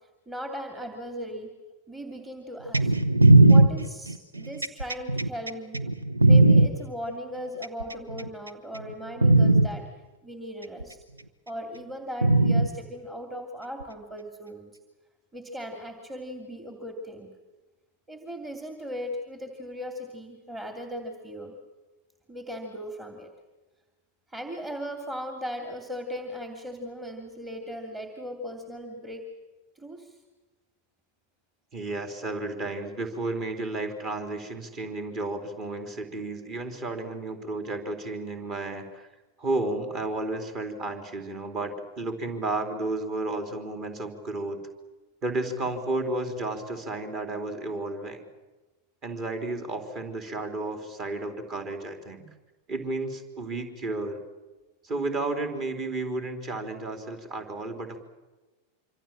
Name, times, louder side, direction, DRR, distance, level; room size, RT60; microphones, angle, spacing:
voice 1, 0.3-1.6 1.9-2.9 3.5-5.8 6.3-9.9 10.2-11.0 11.5-14.7 15.3-17.3 18.1-21.5 22.3-23.3 24.3-29.3 29.7-30.2, equal, 15° right, 4 dB, 2.7 m, -38 dB
sound 1, 2.7-6.7 7.6-8.3 8.7-8.9 9.2-9.7 10.8-10.9 12.2-12.7 13.8-13.9, right 2 dB, 80° right, 1.2 m, -18 dB
voice 2, 31.7-39.1 39.4-44.6 45.2-48.3 49.0-52.3 52.7-54.2 54.8-58.0, right 2 dB, 35° right, 6 dB, 4.0 m, -32 dB
26.0 x 26.0 x 7.6 m, 1.2 s
figure-of-eight pair, 90°, 0 cm